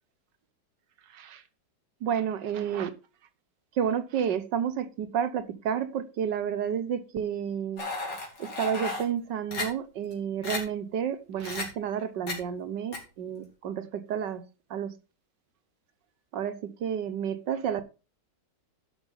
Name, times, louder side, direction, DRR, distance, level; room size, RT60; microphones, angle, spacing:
voice 1, 2.0-2.9 3.8-7.8 8.4-14.4 14.7-14.9 16.3-17.8, right 8 dB, 75° right, 1.6 m, -30 dB
sound 1, 7.8-9.0 9.5-9.6 10.1-10.2 10.4-10.6 11.4-11.6 12.3-12.4 12.9-13.0, left 3 dB, 70° left, 3.7 m, -33 dB
11.5 x 5.9 x 5.4 m
omnidirectional pair, 2.0 m